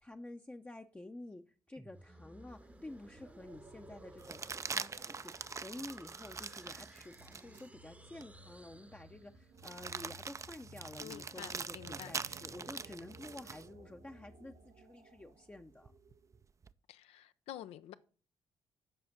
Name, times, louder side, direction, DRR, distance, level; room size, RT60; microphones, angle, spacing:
voice 1, 0.0-15.9, left 2 dB, 15° left, 0.6 m, -50 dB
sound 1, 1.8-9.6, right 1 dB, 15° right, 0.8 m, -58 dB
sound 2, 2.6-2.7 4.2-7.7 8.2-8.3 9.6-13.7 15.9-16.7, right 5 dB, 30° right, 0.4 m, -43 dB
sound 3, 2.7-16.5, right 2 dB, 65° right, 1.5 m, -58 dB
voice 2, 11.0-12.1 16.9-17.9, left 12 dB, 80° left, 0.5 m, -49 dB
7.7 x 4.9 x 5.9 m
supercardioid pair, 60°, 10 cm